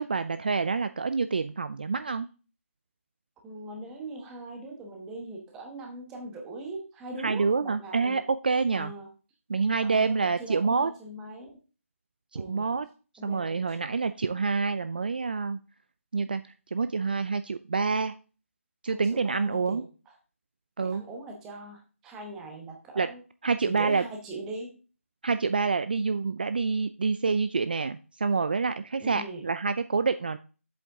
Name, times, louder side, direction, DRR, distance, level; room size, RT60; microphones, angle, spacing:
voice 1, 0.0-2.3 7.2-8.9 9.5-10.9 12.3-12.9 13.2-15.6 16.1-16.4 16.7-18.1 18.8-19.8 20.8-21.0 23.0-23.1 23.4-24.0 25.2-30.4, right 4 dB, 40° right, 12 dB, 0.4 m, -27 dB
voice 2, 3.4-8.2 8.7-9.1 9.8-11.5 12.3-12.7 13.2-14.0 18.9-19.8 20.8-23.2 23.6-24.8 29.0-29.5, right 2 dB, 5° right, 1 dB, 1.0 m, -41 dB
7.9 x 7.8 x 3.6 m, 0.34 s
figure-of-eight pair, 175°, 8 cm